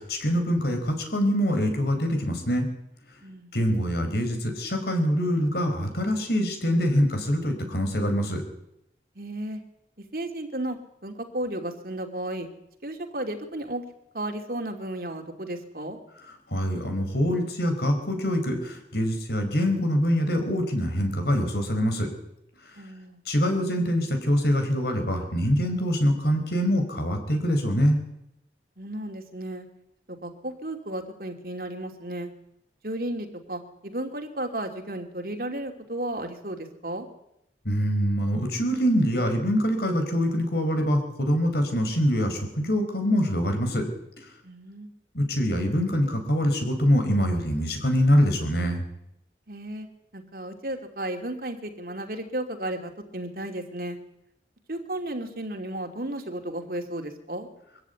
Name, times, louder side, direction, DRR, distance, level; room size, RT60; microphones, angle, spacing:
voice 1, 0.0-2.7 3.5-8.4 16.5-22.1 23.3-28.0 37.6-43.9 45.1-48.8, equal, 65° left, 6 dB, 4.8 m, -24 dB
voice 2, 3.2-3.6 9.1-9.6 10.0-12.5 12.8-13.8 14.1-16.0 22.7-23.2 28.8-29.7 30.1-32.3 32.8-37.1 44.4-44.9 49.5-49.9 50.1-54.0 54.7-57.5, right 1 dB, 55° right, 5 dB, 2.8 m, -34 dB
23.0 x 14.5 x 9.4 m, 0.82 s
head